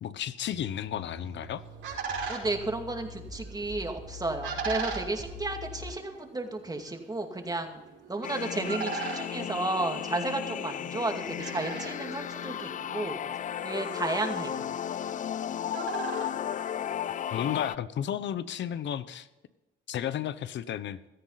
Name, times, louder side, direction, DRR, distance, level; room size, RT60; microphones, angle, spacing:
voice 1, 0.0-1.6 17.3-19.3 19.9-21.0, left 10 dB, 65° left, 15 dB, 0.9 m, -33 dB
sound 1, 0.5-5.9, left 2 dB, 55° right, 5.7 m, -44 dB
sound 2, 1.2-17.4, right 5 dB, 75° right, 5.3 m, -41 dB
voice 2, 2.3-7.8 8.1-13.2 13.6-14.9, right 2 dB, 20° right, 4 dB, 2.4 m, -33 dB
sound 3, 8.2-17.8, left 10 dB, 40° left, 0.4 m, -34 dB
16.5 x 13.5 x 4.1 m, 1.0 s
cardioid pair, 90°, 20 cm